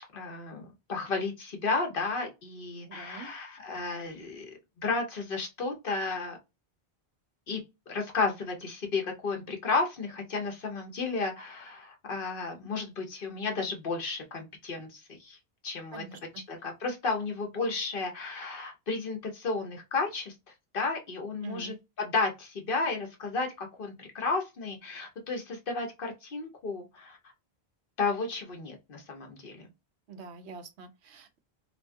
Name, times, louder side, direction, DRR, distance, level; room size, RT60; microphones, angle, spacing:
voice 1, 0.1-4.5 4.8-6.4 7.5-15.4 15.6-16.0 16.5-20.3 20.7-27.2 28.0-29.7, left 4 dB, 60° left, 1.0 m, -33 dB
voice 2, 2.9-3.3 15.9-16.4 21.4-21.8 30.1-31.4, right 5 dB, 90° right, 0.9 m, -45 dB
2.9 x 2.2 x 2.6 m
omnidirectional pair, 1.1 m